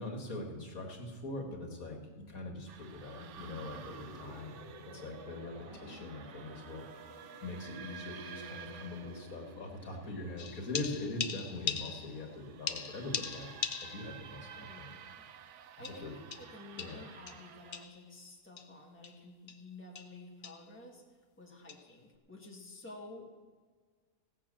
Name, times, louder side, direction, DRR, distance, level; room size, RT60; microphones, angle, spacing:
voice 1, 0.0-4.5 4.9-6.8 7.4-14.9 16.0-16.1 16.8-17.0, left 2 dB, 75° left, 2 dB, 2.1 m, -42 dB
sound 1, 2.7-17.9, right 8 dB, 65° right, 0.9 m, -53 dB
sound 2, 3.3-9.8, right 2 dB, 35° right, 2.6 m, -52 dB
voice 2, 5.5-6.0 14.5-15.2 15.8-21.0 21.4-23.3, left 2 dB, 10° left, -2 dB, 1.7 m, -51 dB
sound 3, 10.4-12.3 12.7-14.2 14.6-14.7 15.8-18.1 18.6-18.7 19.0-19.2 19.5-19.7 20.0-20.2 20.4-20.7 21.7-21.9, left 7 dB, 50° left, 0.6 m, -40 dB
16.5 x 6.0 x 7.5 m, 1.5 s
omnidirectional pair, 1.5 m